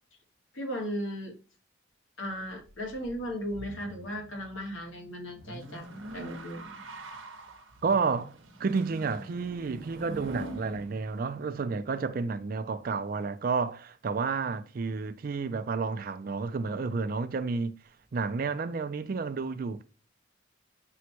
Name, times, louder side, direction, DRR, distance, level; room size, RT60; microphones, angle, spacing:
voice 1, 0.5-1.4 2.2-5.9 6.1-6.7, equal, 85° left, 1.3 m, -36 dB
sound 1, 2.3-11.9, right 1 dB, 90° right, 0.8 m, -45 dB
voice 2, 7.8-17.8 18.1-19.8, right 4 dB, 50° right, 0.4 m, -31 dB
6.2 x 2.2 x 2.9 m
head